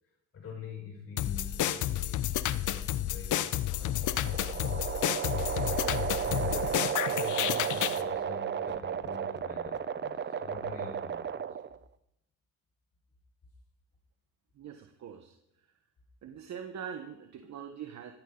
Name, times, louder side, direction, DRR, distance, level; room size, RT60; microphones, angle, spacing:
voice 1, 0.3-2.3 2.5-5.4 6.1-11.6, left 5 dB, 45° left, 1 dB, 5.4 m, -46 dB
sound 1, 1.2-8.0, left 12 dB, 65° left, 0.8 m, -31 dB
sound 2, 3.6-11.8, right 8 dB, 35° right, 0.8 m, -34 dB
voice 2, 14.6-15.3 16.2-18.1, right 8 dB, 60° right, 5 dB, 1.4 m, -43 dB
14.0 x 14.0 x 4.0 m, 0.80 s
cardioid pair, 85°, 32 cm